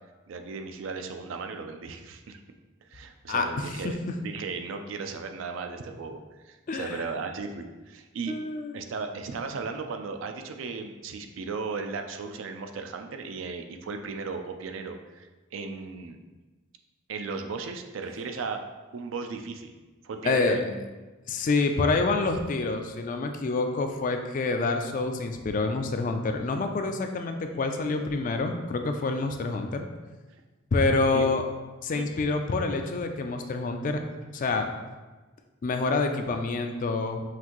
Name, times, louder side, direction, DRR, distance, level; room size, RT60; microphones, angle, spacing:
voice 1, 0.3-2.4 2.9-4.0 4.2-6.2 6.4-8.3 8.7-16.2 17.1-18.6 18.9-19.7 20.0-20.9 27.5-27.6 31.1-31.2 31.9-32.1, right 4 dB, 70° right, 6 dB, 0.4 m, -36 dB
voice 2, 3.3-3.9 6.7-7.0 8.3-8.8 20.2-20.6 21.3-29.9 30.7-31.4 31.8-34.0 34.3-34.7 35.6-37.2, left 3 dB, 40° left, 5 dB, 0.3 m, -27 dB
5.7 x 2.6 x 2.9 m, 1.2 s
head